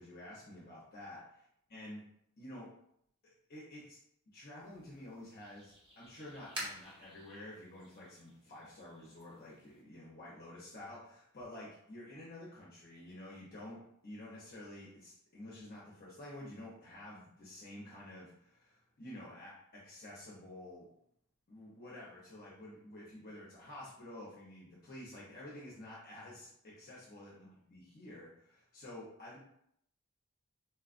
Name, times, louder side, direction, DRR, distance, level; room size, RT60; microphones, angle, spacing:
voice 1, 0.0-1.2 1.7-2.1 2.4-2.7 3.2-4.0 4.3-20.9 21.5-29.4, left 1 dB, 45° left, -6 dB, 0.7 m, -50 dB
sound 1, 4.6-9.8, right 1 dB, 25° right, 0.9 m, -50 dB
4.3 x 2.3 x 2.4 m, 0.73 s
head